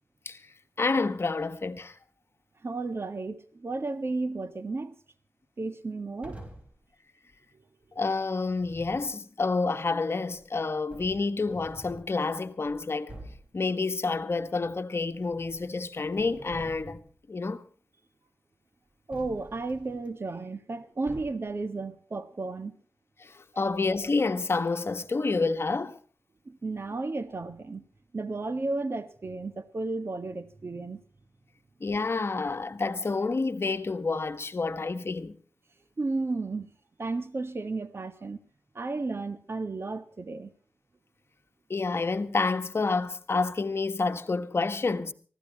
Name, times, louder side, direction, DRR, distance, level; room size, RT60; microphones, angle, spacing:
voice 1, 0.8-2.0 7.9-13.2 13.5-17.0 17.3-17.6 23.2-26.0 31.8-35.3 41.7-45.1, left 3 dB, 50° left, 1.5 m, -29 dB
voice 2, 2.6-4.9 5.6-6.4 7.5-7.6 19.1-22.8 26.4-27.8 28.1-31.0 36.0-36.7 37.0-38.4 38.7-40.5, right 3 dB, 50° right, 1.7 m, -33 dB
sound 1, 6.2-6.8 8.5-9.1 10.3-10.4 10.9-12.1 12.6-12.7 13.1-13.6 15.1-15.8 16.1-17.2 19.1-20.1 21.1-21.6, right 1 dB, 25° right, 5.2 m, -47 dB
24.0 x 16.0 x 3.0 m
cardioid pair, 50°, 5 cm